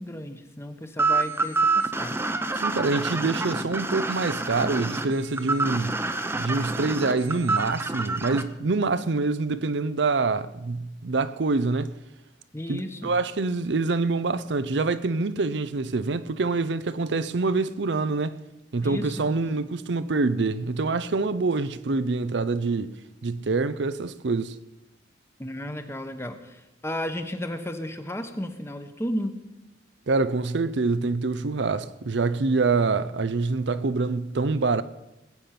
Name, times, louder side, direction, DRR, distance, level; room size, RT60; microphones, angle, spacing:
voice 1, 0.0-2.2 12.5-13.2 18.8-19.7 25.4-29.4, left 1 dB, 15° left, 1.0 m, -34 dB
sound 1, 1.0-8.4, right 3 dB, 15° right, 0.7 m, -27 dB
voice 2, 2.6-6.0 6.3-11.9 12.7-18.4 18.7-22.9 23.2-24.6 30.1-34.8, right 3 dB, 70° right, 0.6 m, -26 dB
19.5 x 8.5 x 5.9 m
head